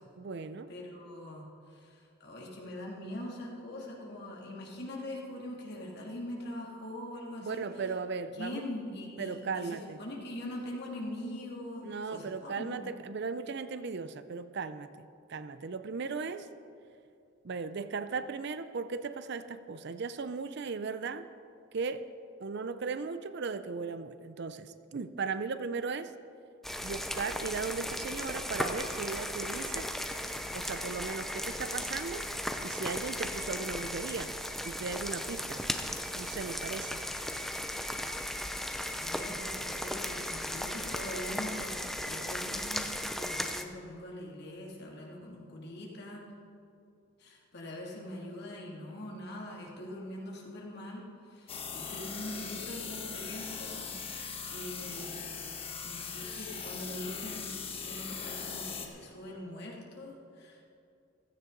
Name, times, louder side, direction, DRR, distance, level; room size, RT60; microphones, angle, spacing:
voice 1, 0.2-0.7 7.4-8.6 9.2-10.0 11.8-16.5 17.4-21.3 21.7-22.1 22.4-26.1 26.8-29.9 30.5-32.3 32.6-34.3 34.6-35.7 36.1-37.0, right 4 dB, 55° right, 12 dB, 0.5 m, -37 dB
voice 2, 0.7-7.6 8.3-12.9 39.0-46.2 47.2-55.4 55.8-57.5 57.8-60.6, left 1 dB, 55° left, -2 dB, 2.4 m, -43 dB
sound 1, 26.6-43.6, left 1 dB, ahead, 0.6 m, -36 dB
sound 2, 51.5-58.9, left 6 dB, 30° left, 1.2 m, -40 dB
15.5 x 13.5 x 3.9 m, 2.5 s
head